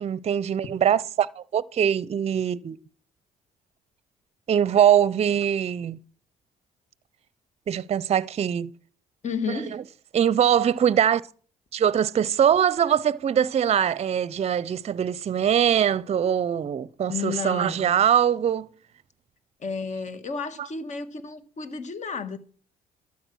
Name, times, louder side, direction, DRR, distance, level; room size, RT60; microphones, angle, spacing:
voice 1, 0.0-2.8 4.5-6.0 7.7-8.7 9.5-9.8 10.1-11.2 11.7-18.7, right 9 dB, 45° right, 0.6 m, -22 dB
voice 2, 9.2-9.8 17.1-17.9 19.6-22.4, left 5 dB, 50° left, 1.8 m, -32 dB
12.5 x 8.5 x 6.2 m
supercardioid pair, 75°, 16 cm